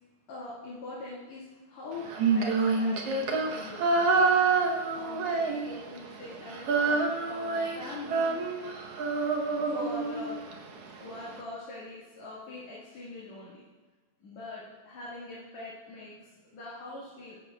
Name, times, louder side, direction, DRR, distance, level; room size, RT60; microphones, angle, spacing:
voice 1, 0.3-2.1 2.3-4.3 4.9-8.3 9.5-10.4 11.0-13.6 14.2-17.4, left 2 dB, 65° left, -7 dB, 3.0 m, -43 dB
Female singing, 2.1-6.0 6.3-10.5, right 4 dB, 65° right, 1.6 m, -27 dB
14.0 x 10.5 x 2.3 m, 1.3 s
omnidirectional pair, 3.6 m